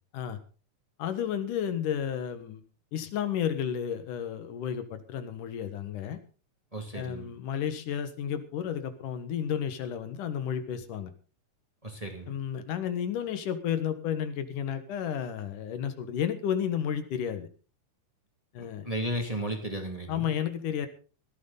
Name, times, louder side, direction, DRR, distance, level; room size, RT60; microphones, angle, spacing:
voice 1, 1.0-2.6 2.9-6.2 6.9-11.1 12.3-17.5 18.5-18.9 20.1-20.9, left 9 dB, 85° left, 10 dB, 3.1 m, -32 dB
voice 2, 6.7-7.3 11.8-12.3 18.6-20.3, right 1 dB, 10° right, 3 dB, 2.2 m, -34 dB
17.5 x 13.0 x 4.1 m, 0.37 s
omnidirectional pair, 3.6 m